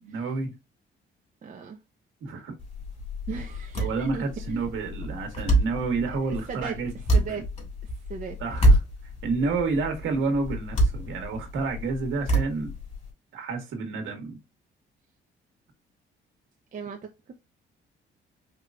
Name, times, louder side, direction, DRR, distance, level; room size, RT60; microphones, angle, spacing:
voice 1, 0.0-0.5 2.2-2.5 3.8-7.4 8.4-8.8 9.2-12.7 13.3-14.4, right 4 dB, 80° right, 1.4 m, -29 dB
voice 2, 1.4-1.8 3.3-4.6 6.3-7.4 7.8-8.4 16.7-17.4, right 6 dB, 40° right, 0.7 m, -38 dB
sound 1, 2.6-13.1, right 1 dB, 35° left, 2.6 m, -27 dB
4.6 x 3.0 x 2.4 m
cardioid pair, 90°, 20 cm